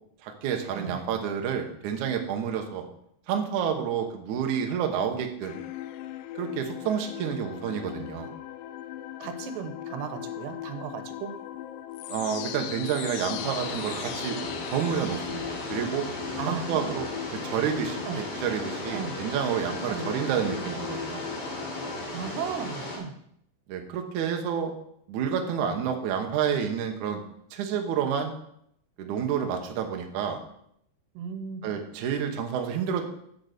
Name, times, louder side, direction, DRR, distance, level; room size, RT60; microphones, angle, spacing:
voice 1, 0.2-2.8 3.3-5.6 6.4-8.3 12.1-14.4 14.7-16.1 16.5-17.1 17.4-18.1 18.3-21.2 23.7-24.7 25.1-27.2 27.5-28.3 29.0-30.4 31.6-33.0, right 8 dB, 65° right, 4 dB, 2.0 m, -29 dB
sound 1, 5.4-22.0, left 13 dB, 85° left, 2.1 m, -39 dB
voice 2, 9.2-11.3 16.4-16.9 18.1-18.2 18.9-19.2 19.9-20.1 22.1-23.1 31.2-31.7, right 6 dB, 90° right, 8 dB, 3.0 m, -35 dB
sound 2, 13.4-23.0, left 1 dB, 60° left, 3.8 m, -36 dB
7.7 x 6.6 x 6.7 m, 0.72 s
omnidirectional pair, 4.7 m